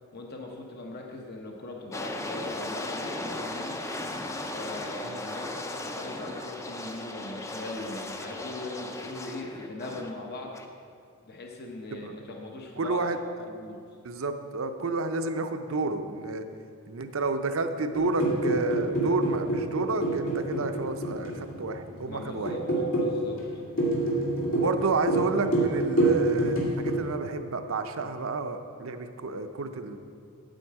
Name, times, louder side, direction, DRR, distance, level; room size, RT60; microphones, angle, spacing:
voice 1, 0.1-3.7 4.5-10.6 11.3-13.0 13.5-13.8 22.1-22.6 23.0-23.4, left 2 dB, 45° left, 1 dB, 0.8 m, -40 dB
sound 1, 1.9-10.1 10.5-10.7, left 1 dB, 15° left, 0.4 m, -36 dB
voice 2, 12.8-13.2 14.0-16.5 16.9-22.5 24.5-30.0, right 3 dB, 65° right, 8 dB, 0.6 m, -30 dB
sound 2, 17.9-27.0, right 2 dB, 70° left, 2.2 m, -27 dB
9.0 x 8.4 x 4.7 m, 2.4 s
head